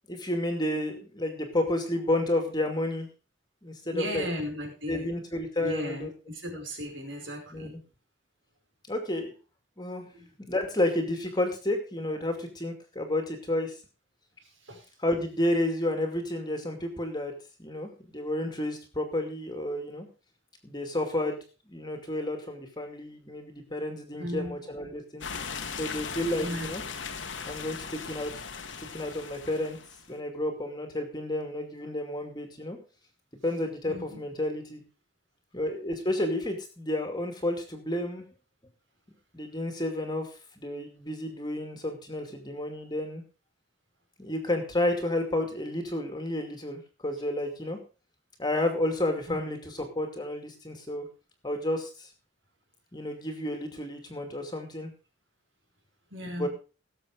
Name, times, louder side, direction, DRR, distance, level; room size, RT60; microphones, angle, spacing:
voice 1, 0.1-3.1 3.6-4.3 4.9-6.1 7.5-7.8 8.9-9.4 9.8-10.1 10.4-13.7 15.0-17.3 17.6-20.1 20.6-25.3 25.8-26.8 27.4-28.3 28.8-29.8 30.1-32.8 33.4-34.8 35.5-38.2 39.3-43.2 44.2-47.8 48.4-51.1 51.4-52.1 52.9-54.9 56.2-56.5, left 1 dB, 20° left, 5 dB, 2.5 m, -31 dB
voice 2, 3.9-5.1 5.6-7.7 10.1-10.3 14.7-14.8 24.2-24.6 26.4-26.7 33.9-34.2 49.3-49.4 56.1-56.5, equal, 65° right, 2 dB, 5.1 m, -36 dB
sound 1, 25.2-30.1, left 5 dB, 65° left, 1.6 m, -38 dB
18.0 x 7.6 x 5.1 m, 0.34 s
head